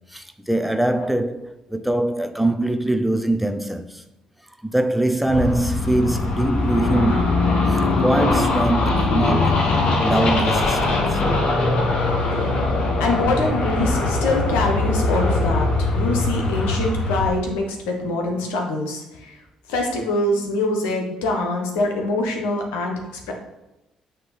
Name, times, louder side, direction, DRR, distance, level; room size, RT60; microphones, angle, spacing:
voice 1, 0.1-4.0 4.6-7.3 7.7-9.6 10.0-11.2, right 1 dB, 5° right, 0.6 m, -23 dB
sound 1, 5.3-17.3, left 2 dB, 50° left, 1.3 m, -21 dB
voice 2, 13.0-15.7 15.9-19.4 19.7-23.0 23.3-23.4, left 2 dB, 75° left, 1.2 m, -24 dB
9.2 x 3.1 x 4.1 m
figure-of-eight pair, 45°, 2 cm